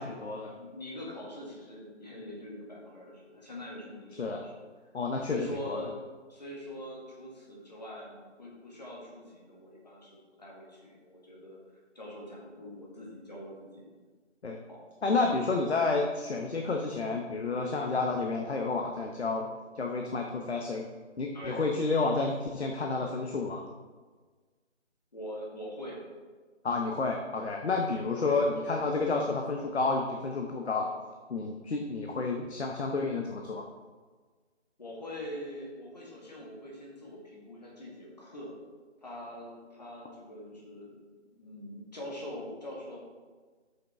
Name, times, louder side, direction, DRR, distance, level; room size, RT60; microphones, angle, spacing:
voice 1, 0.0-0.5 4.2-4.4 4.9-5.8 14.4-14.6 15.0-20.9 21.2-23.6 26.6-30.9 31.3-33.6, left 3 dB, 60° left, 2 dB, 0.8 m, -30 dB
voice 2, 0.6-4.6 5.3-6.0 6.3-11.6 11.9-13.8 14.7-14.8 21.3-21.6 25.1-26.0 27.9-28.4 34.8-38.6 39.0-40.9 41.4-43.0, equal, 35° left, -3 dB, 1.6 m, -43 dB
7.5 x 5.8 x 3.5 m, 1.4 s
figure-of-eight pair, 180°, 36 cm